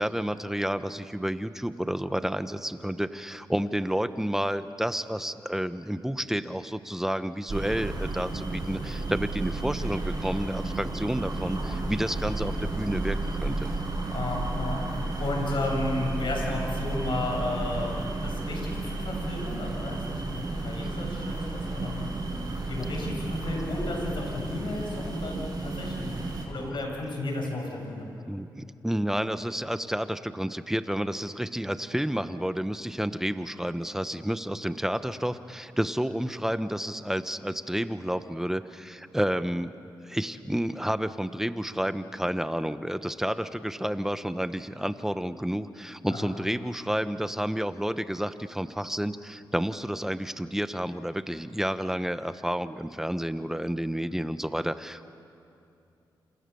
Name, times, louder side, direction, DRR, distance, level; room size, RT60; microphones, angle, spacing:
voice 1, 0.0-13.7 28.3-39.7 40.0-55.1, equal, 5° right, 11 dB, 1.2 m, -30 dB
sound 1, 7.5-26.5, right 2 dB, 50° right, 7.7 m, -32 dB
voice 2, 14.1-22.4 22.7-28.1 46.1-46.3, left 2 dB, 70° left, 0 dB, 7.9 m, -33 dB
29.0 x 27.0 x 7.1 m, 2.7 s
cardioid pair, 60°, 8 cm